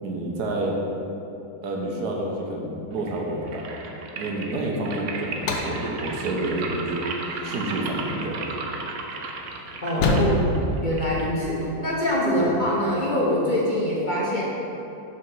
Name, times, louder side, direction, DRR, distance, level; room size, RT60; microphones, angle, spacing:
voice 1, 0.0-0.8 1.6-3.6 4.2-7.1 7.4-8.7 10.0-10.4 12.4-12.5, right 2 dB, 85° right, -1 dB, 1.5 m, -29 dB
sound 1, 2.9-12.0, right 4 dB, 65° right, 0.8 m, -35 dB
sound 2, 5.3-11.7, left 2 dB, 80° left, 1.3 m, -29 dB
voice 2, 9.8-14.4, equal, 40° left, -5 dB, 0.8 m, -24 dB
6.8 x 3.9 x 5.3 m, 2.9 s
omnidirectional pair, 1.7 m